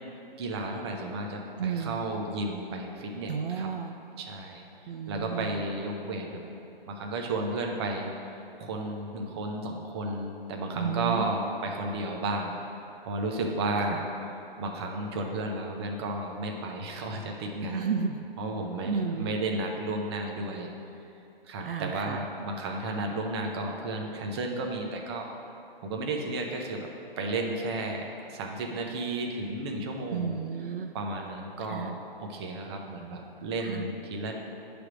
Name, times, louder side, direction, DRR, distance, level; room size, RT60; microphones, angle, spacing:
voice 1, 0.4-3.7 4.2-4.6 5.1-6.5 6.9-8.1 8.6-12.6 13.0-14.1 14.6-17.9 18.4-18.9 19.2-20.7 21.4-25.3 25.8-26.9 27.2-30.4 30.9-34.3, right 2 dB, 25° right, 1 dB, 0.7 m, -33 dB
voice 2, 1.6-2.1 3.3-4.0 4.9-5.6 10.7-11.3 13.9-14.0 17.6-18.2 18.8-19.4 21.6-22.2 30.1-31.0 31.7-32.0 33.6-33.9, right 6 dB, 65° right, 6 dB, 0.5 m, -32 dB
9.4 x 3.4 x 6.1 m, 2.7 s
hypercardioid pair, 150°, 30 cm